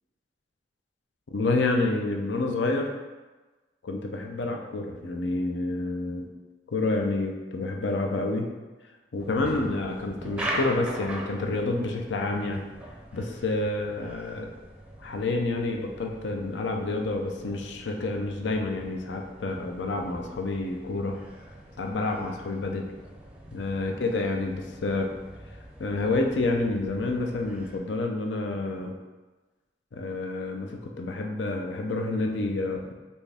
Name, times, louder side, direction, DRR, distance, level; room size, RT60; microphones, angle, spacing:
voice 1, 1.3-2.9 3.8-6.2 6.7-8.5 9.1-12.6 13.1-14.5 15.0-21.2 21.8-22.9 23.5-25.1 25.8-28.9 29.9-32.9, left 2 dB, 80° left, 2 dB, 0.6 m, -28 dB
sound 1, 9.2-27.8, right 1 dB, 5° right, 0.5 m, -42 dB
4.3 x 3.5 x 3.4 m, 1.2 s
head